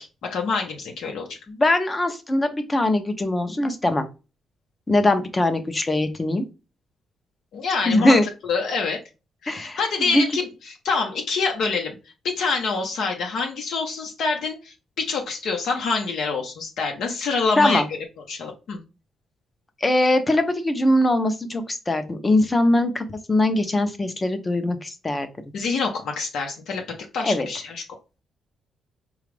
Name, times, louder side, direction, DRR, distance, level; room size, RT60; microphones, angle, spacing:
voice 1, 0.0-1.4 7.5-8.2 8.4-9.0 9.4-12.0 12.2-17.8 18.3-18.8 25.5-26.8 27.1-27.8, left 4 dB, 70° left, 2 dB, 0.8 m, -26 dB
voice 2, 1.5-4.0 4.9-6.4 7.9-8.2 9.5-10.2 17.6-17.8 19.8-25.3 27.2-27.5, left 1 dB, 20° left, 8 dB, 0.6 m, -21 dB
5.0 x 2.4 x 3.2 m, 0.30 s
cardioid pair, 150°, 0 cm